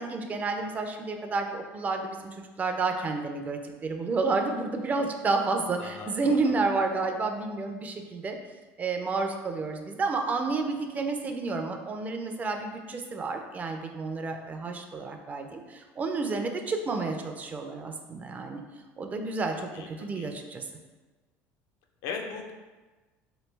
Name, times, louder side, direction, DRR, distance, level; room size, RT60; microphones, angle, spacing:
voice 1, 0.0-8.4 8.8-18.6 19.0-20.6, right 3 dB, 25° right, 4 dB, 0.4 m, -30 dB
voice 2, 22.0-22.5, left 5 dB, 75° left, 3 dB, 0.5 m, -37 dB
3.0 x 2.6 x 3.2 m, 1.3 s
supercardioid pair, 115°, 6 cm